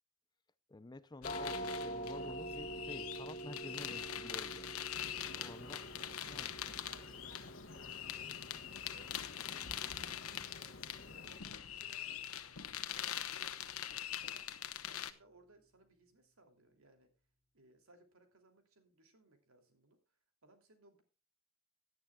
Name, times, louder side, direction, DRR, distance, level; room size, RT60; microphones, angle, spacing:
voice 1, 0.7-4.8 5.4-5.8 6.3-6.5, left 2 dB, 20° left, 0.5 m, -51 dB
sound 1, 1.2-15.1, left 10 dB, 80° left, 1.1 m, -43 dB
sound 2, 1.2-12.7, right 1 dB, 35° left, 1.8 m, -48 dB
sound 3, 4.9-11.4, left 2 dB, 60° left, 1.4 m, -53 dB
voice 2, 5.5-8.1 8.6-10.8 11.1-14.5 14.9-17.1 17.5-20.0 20.4-21.0, right 2 dB, 75° right, 2.9 m, -65 dB
17.5 x 11.0 x 2.3 m
head